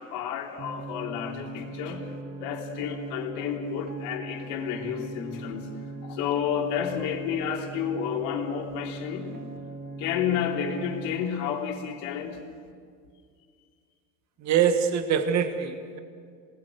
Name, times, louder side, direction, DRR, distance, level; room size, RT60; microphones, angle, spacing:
voice 1, 0.0-5.7 6.0-9.4 10.0-12.4, left 8 dB, 60° left, 1 dB, 3.6 m, -31 dB
sound 1, 0.6-11.2, right 2 dB, 20° right, 2.9 m, -40 dB
voice 2, 14.4-16.0, right 8 dB, 40° right, 7 dB, 1.8 m, -24 dB
27.5 x 20.0 x 6.6 m, 2.1 s
supercardioid pair, 110°, 40 cm